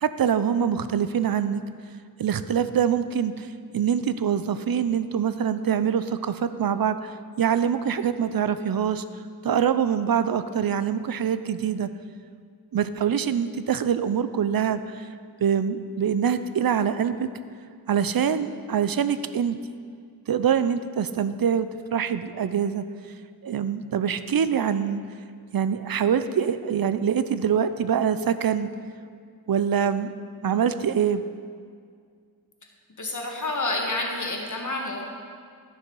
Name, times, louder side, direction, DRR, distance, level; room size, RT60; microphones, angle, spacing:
voice 1, 0.0-1.6 2.2-3.5 3.7-9.0 9.4-11.9 12.7-15.1 15.4-17.3 17.9-19.6 20.3-22.8 23.4-25.0 25.5-28.7 29.5-30.1 30.4-31.2, right 8 dB, 60° right, 12 dB, 0.5 m, -24 dB
voice 2, 33.0-35.0, left 2 dB, 50° left, 0 dB, 1.5 m, -29 dB
11.5 x 6.7 x 4.7 m, 2.1 s
wide cardioid pair, 70°, 40 cm